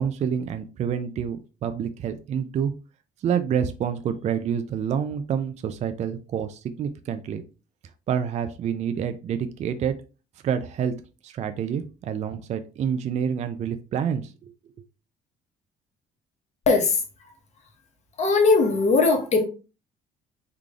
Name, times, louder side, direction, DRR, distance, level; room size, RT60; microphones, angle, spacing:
voice 1, 0.0-2.7 3.2-7.4 8.1-9.9 10.4-10.9 11.2-14.5, right 8 dB, 45° right, 0.4 m, -28 dB
voice 2, 18.2-19.4, left 3 dB, 40° left, 1.1 m, -19 dB
3.8 x 3.3 x 2.4 m
cardioid pair, 110°, 17 cm